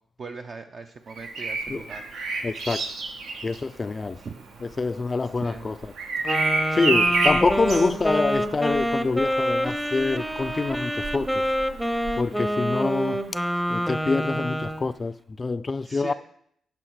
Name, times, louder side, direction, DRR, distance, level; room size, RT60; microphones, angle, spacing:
voice 1, 0.2-2.1 4.2-4.7 5.2-5.7 15.8-16.1, right 4 dB, 50° right, 0.5 m, -40 dB
Bird vocalization bird call bird song, 1.1-12.9 14.6-14.8, right 3 dB, 85° right, 1.2 m, -30 dB
voice 2, 2.4-2.9 3.4-4.2 4.6-5.9 6.7-11.5 12.2-13.2 13.7-16.1, left 3 dB, 30° left, 0.3 m, -26 dB
Wind instrument woodwind instrument, 6.2-14.9, equal, 5° right, 0.7 m, -27 dB
10.5 x 5.6 x 4.6 m
cardioid pair, 85°, 0 cm